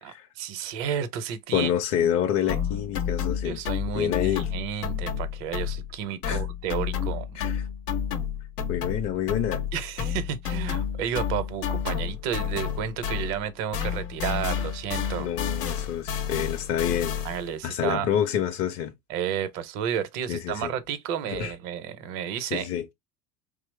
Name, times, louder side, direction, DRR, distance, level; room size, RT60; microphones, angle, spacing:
voice 1, 0.0-2.1 2.4-2.8 3.4-7.4 9.7-15.3 17.2-18.1 19.1-22.7, right 9 dB, 50° right, 0.7 m, -32 dB
voice 2, 1.5-3.6 3.9-4.5 6.2-6.4 7.4-7.7 8.7-9.7 15.2-17.2 17.6-18.9 20.3-20.7 21.3-21.5 22.5-22.9, left 10 dB, 30° left, 0.5 m, -27 dB
sound 1, 2.5-6.0 6.2-13.5 13.7-17.5, left 8 dB, 75° left, 0.8 m, -30 dB
2.9 x 2.0 x 3.1 m
figure-of-eight pair, 75°, 47 cm